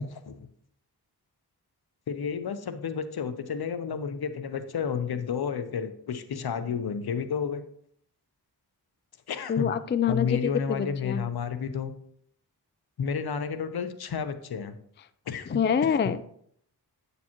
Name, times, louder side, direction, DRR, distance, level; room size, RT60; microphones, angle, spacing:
voice 1, 2.1-7.6 9.3-9.7 10.1-11.9 13.0-14.8 15.3-15.6, left 6 dB, 65° left, 10 dB, 0.8 m, -31 dB
voice 2, 9.5-11.2 15.5-16.2, left 7 dB, 30° left, 13 dB, 0.4 m, -26 dB
8.6 x 6.8 x 3.0 m, 0.66 s
wide cardioid pair, 80°, 40 cm